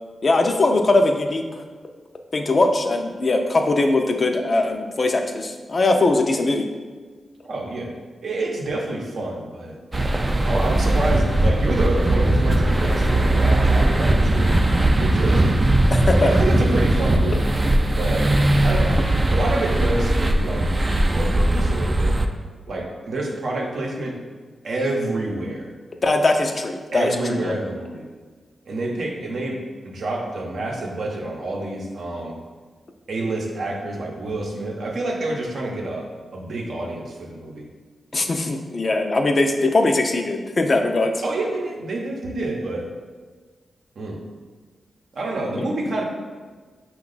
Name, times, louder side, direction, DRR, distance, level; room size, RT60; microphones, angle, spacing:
voice 1, 0.2-1.4 2.3-6.7 15.9-16.3 26.0-27.6 38.1-41.1 45.6-45.7, left 2 dB, 45° left, 4 dB, 0.4 m, -20 dB
voice 2, 7.4-7.9 8.2-9.8 10.4-14.6 15.0-15.5 16.1-17.5 17.9-18.3 18.6-19.0 19.3-20.7 21.1-22.2 22.7-24.2 24.6-25.7 26.9-28.1 28.6-32.4 33.1-37.7 41.2-42.9 44.0-44.2 45.1-46.0, right 2 dB, 70° right, 0 dB, 0.7 m, -28 dB
sound 1, 9.9-22.3, right 1 dB, 30° right, 0.3 m, -19 dB
5.2 x 2.3 x 3.9 m, 1.4 s
cardioid pair, 75°, 0 cm